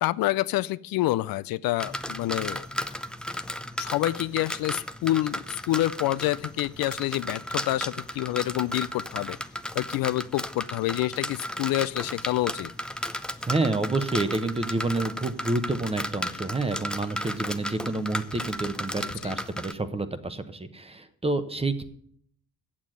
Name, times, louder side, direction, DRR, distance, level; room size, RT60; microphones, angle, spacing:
voice 1, 0.0-2.7 3.8-9.4 9.7-12.7 19.0-19.3, left 16 dB, 70° left, 17 dB, 0.5 m, -27 dB
sound 1, 1.8-19.7, equal, ahead, 0.6 m, -35 dB
voice 2, 13.5-21.8, right 2 dB, 15° right, 11 dB, 1.0 m, -28 dB
8.6 x 7.3 x 7.7 m, 0.64 s
cardioid pair, 90°, 36 cm